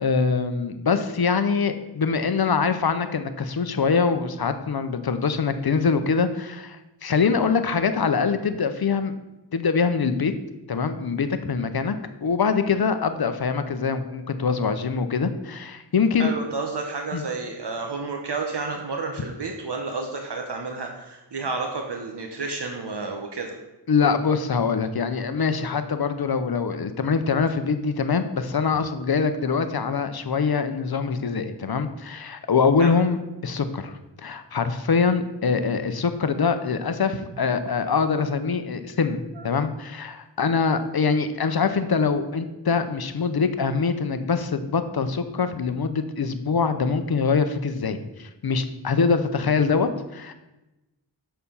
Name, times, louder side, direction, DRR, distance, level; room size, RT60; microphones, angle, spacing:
voice 1, 0.0-9.1 9.5-10.3 10.7-11.9 12.2-16.3 17.1-17.2 23.9-50.3, left 5 dB, 55° left, 10 dB, 0.7 m, -24 dB
voice 2, 16.2-23.5 32.8-33.0 39.4-39.5, right 4 dB, 65° right, 3 dB, 0.9 m, -31 dB
6.7 x 5.7 x 5.5 m, 1.0 s
wide cardioid pair, 70°, 45 cm